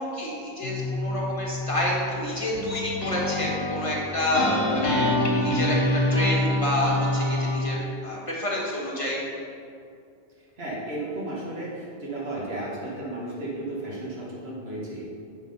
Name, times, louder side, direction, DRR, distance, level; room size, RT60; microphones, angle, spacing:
voice 1, 0.0-5.1 5.4-9.2, left 1 dB, 30° left, -4 dB, 1.5 m, -28 dB
sound 1, 0.6-7.8, left 1 dB, 65° left, 1.3 m, -26 dB
voice 2, 10.4-15.0, right 1 dB, 80° right, -6 dB, 2.1 m, -34 dB
8.8 x 4.8 x 5.5 m, 2.5 s
omnidirectional pair, 1.0 m